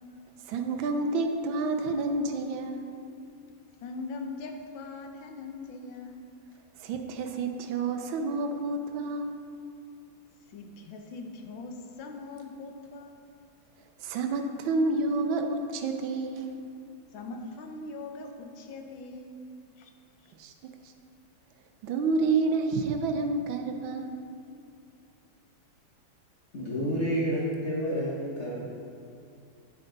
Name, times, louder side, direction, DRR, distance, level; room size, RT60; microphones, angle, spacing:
voice 1, 0.4-2.9 6.8-9.3 14.0-16.5 20.4-20.7 21.8-24.2, right 3 dB, 85° right, 4 dB, 1.5 m, -29 dB
voice 2, 3.8-6.3 10.5-13.2 17.1-19.9 20.2-20.3, left 3 dB, 80° left, 4 dB, 1.6 m, -41 dB
voice 3, 26.5-28.5, equal, 40° left, -6 dB, 1.4 m, -29 dB
9.4 x 9.0 x 3.9 m, 2.4 s
omnidirectional pair, 2.1 m